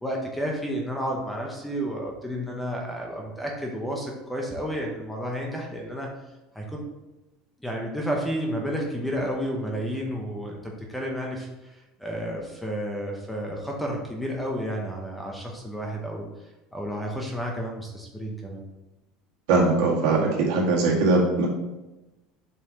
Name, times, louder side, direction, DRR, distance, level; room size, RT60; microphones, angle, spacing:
voice 1, 0.0-6.1 6.5-6.8 7.6-16.3 16.7-18.6, equal, 5° left, -1 dB, 0.8 m, -31 dB
voice 2, 19.5-21.5, right 3 dB, 65° right, -3 dB, 2.1 m, -21 dB
7.4 x 5.4 x 3.0 m, 1.0 s
cardioid pair, 170°, 0 cm